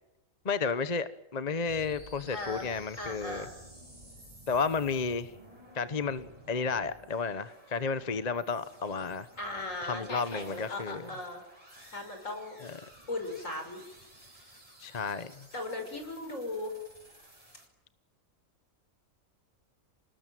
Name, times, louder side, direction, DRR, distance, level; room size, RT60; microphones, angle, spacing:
voice 1, 0.4-3.5 4.5-5.3 5.7-9.3 9.8-11.1 12.6-12.7 14.8-15.5, left 5 dB, 35° left, 13 dB, 1.0 m, -32 dB
sound 1, 1.7-17.7, right 1 dB, 25° right, 5.3 m, -54 dB
voice 2, 2.3-2.7 3.0-3.5 9.4-11.4 11.9-12.6 13.1-13.8 14.4-14.5 15.5-16.8, left 2 dB, 70° left, 5 dB, 6.2 m, -37 dB
27.5 x 19.0 x 9.2 m, 0.89 s
omnidirectional pair, 1.4 m